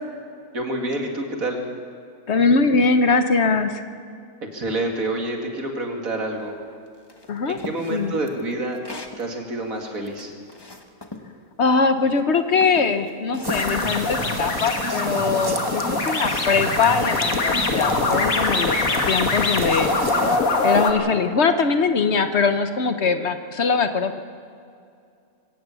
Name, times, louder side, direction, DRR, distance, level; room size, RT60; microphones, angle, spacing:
voice 1, 0.5-1.6 4.5-6.6 7.5-8.8 9.2-10.3 15.5-15.8 21.0-21.2, right 2 dB, 85° right, 2 dB, 2.8 m, -28 dB
voice 2, 2.3-3.8 7.3-7.6 7.9-8.1 11.6-18.8 19.1-19.9 20.6-24.2, left 4 dB, 55° left, 8 dB, 1.2 m, -21 dB
sound 1, 7.1-9.2 9.8-11.3 12.0-12.2 12.6-13.6, left 2 dB, 20° left, 1.2 m, -38 dB
sound 2, 13.4-20.9, left 3 dB, 80° left, 2.2 m, -23 dB
sound 3, 13.4-20.4, right 2 dB, 20° right, 0.9 m, -32 dB
23.0 x 17.0 x 7.0 m, 2.4 s
omnidirectional pair, 1.4 m